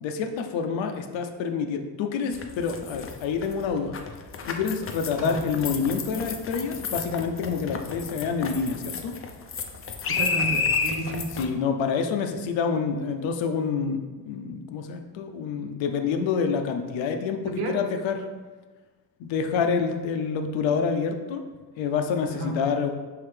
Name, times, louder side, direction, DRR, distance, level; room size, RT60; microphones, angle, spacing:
voice 1, 0.0-4.0 4.4-9.1 11.4-18.3 19.2-21.4 21.8-22.9, left 6 dB, 65° left, 5 dB, 0.7 m, -27 dB
sound 1, 2.3-11.4, left 5 dB, 30° left, 0.5 m, -31 dB
voice 2, 10.1-11.3 17.5-17.8 22.3-22.6, right 3 dB, 80° right, 2 dB, 0.9 m, -31 dB
4.7 x 3.2 x 3.3 m, 1.3 s
hypercardioid pair, 55°, 50 cm